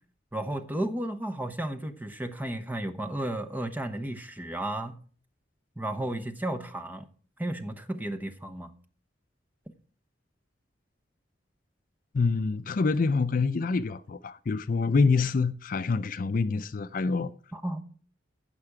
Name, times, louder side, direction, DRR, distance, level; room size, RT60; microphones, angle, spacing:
voice 1, 0.3-5.0 5.8-7.1 7.4-8.7 17.5-17.8, right 1 dB, 10° right, 0.9 m, -33 dB
voice 2, 12.1-17.3, left 4 dB, 45° left, 0.4 m, -26 dB
15.5 x 5.9 x 4.8 m
head